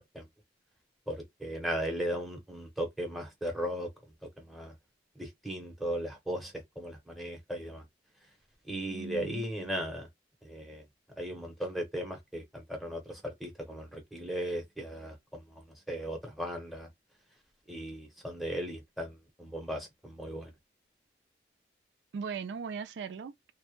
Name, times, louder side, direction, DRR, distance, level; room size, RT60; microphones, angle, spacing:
voice 1, 1.1-3.9 4.2-4.8 5.2-7.8 8.7-10.1 10.4-10.8 11.2-16.9 17.7-20.5, equal, ahead, 0.6 m, -37 dB
voice 2, 8.9-9.5 22.1-23.5, right 6 dB, 90° right, 0.3 m, -39 dB
2.1 x 2.0 x 2.9 m
head